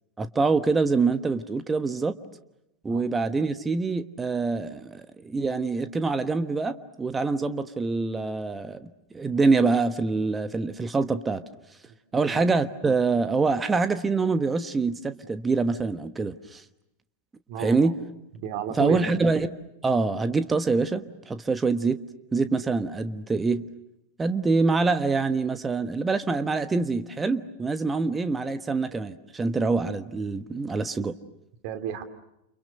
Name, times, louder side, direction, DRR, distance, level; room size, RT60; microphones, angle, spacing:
voice 1, 0.2-2.1 2.8-8.9 9.1-11.4 12.1-16.6 17.6-18.0 18.7-19.5 19.8-22.0 22.3-23.6 24.2-31.1, right 4 dB, 15° right, 11 dB, 1.3 m, -25 dB
voice 2, 17.5-17.9 18.3-19.0 31.6-32.0, right 9 dB, 45° right, 8 dB, 2.9 m, -32 dB
30.0 x 29.5 x 6.6 m, 0.86 s
figure-of-eight pair, 90°, 0 cm